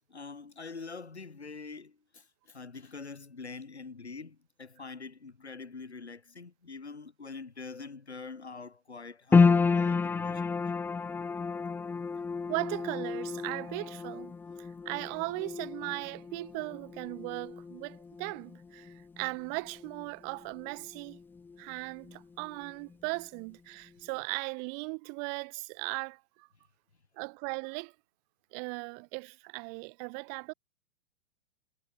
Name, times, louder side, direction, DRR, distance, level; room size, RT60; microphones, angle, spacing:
voice 1, 0.1-10.5, left 4 dB, 85° left, 6.8 m, -45 dB
sound 1, 9.3-21.7 22.0-22.9 23.4-23.5, left 5 dB, 5° left, 0.5 m, -31 dB
voice 2, 12.5-21.2 21.6-26.5 27.2-27.9 28.5-30.5, right 40 dB or more, 40° right, 2.0 m, -38 dB
figure-of-eight pair, 105°, 32 cm